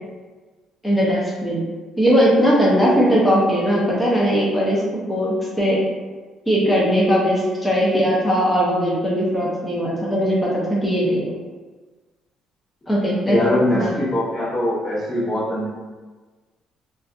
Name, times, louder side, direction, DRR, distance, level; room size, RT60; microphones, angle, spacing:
voice 1, 0.8-1.6 2.0-4.8 5.1-5.8 6.5-11.3 12.9-13.4 13.7-13.9, equal, 10° left, -6 dB, 0.7 m, -19 dB
voice 2, 13.3-15.7, left 1 dB, 30° left, -9 dB, 1.0 m, -22 dB
2.5 x 2.2 x 2.5 m, 1.3 s
cardioid pair, 90°, 0 cm